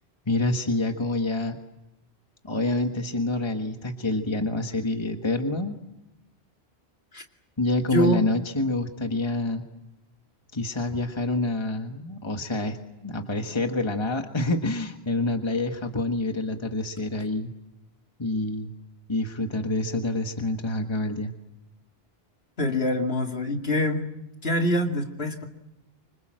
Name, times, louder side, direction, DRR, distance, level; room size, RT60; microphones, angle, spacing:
voice 1, 0.3-1.6 2.4-5.8 7.6-9.6 10.5-17.5 18.2-18.7 19.1-21.3, left 2 dB, 25° left, 4 dB, 1.6 m, -27 dB
voice 2, 7.9-8.2 22.6-24.0 24.4-25.5, left 1 dB, 75° left, 3 dB, 2.8 m, -24 dB
26.0 x 26.0 x 7.6 m, 0.95 s
omnidirectional pair, 1.1 m